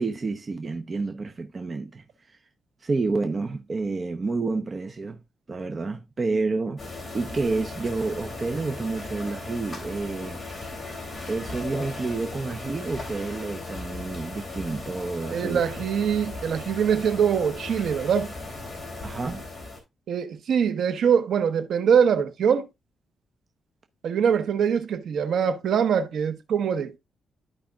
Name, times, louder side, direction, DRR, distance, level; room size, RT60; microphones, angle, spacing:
voice 1, 0.0-2.4 2.8-5.2 5.5-10.4 11.3-15.6 19.0-19.5, right 3 dB, 30° right, 0.8 m, -29 dB
sound 1, 6.8-19.8, left 2 dB, 25° left, 3.2 m, -37 dB
voice 2, 15.3-18.3 20.1-22.7 24.0-27.0, right 7 dB, 65° right, 1.0 m, -23 dB
13.0 x 5.0 x 2.4 m
cardioid pair, 135°, 0 cm